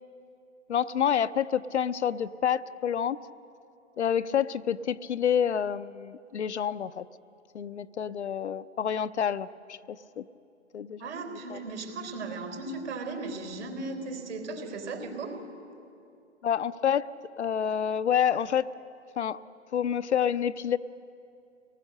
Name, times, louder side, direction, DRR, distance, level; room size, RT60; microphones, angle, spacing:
voice 1, 0.7-3.2 4.0-7.1 7.5-10.2 10.7-11.1 11.5-11.6 16.4-17.1 17.4-18.7 19.2-19.4 19.7-20.8, left 8 dB, 60° left, 14 dB, 0.6 m, -28 dB
voice 2, 11.0-15.4, right 3 dB, 65° right, 3 dB, 4.0 m, -36 dB
24.0 x 19.5 x 6.6 m, 2.6 s
figure-of-eight pair, 135°, 38 cm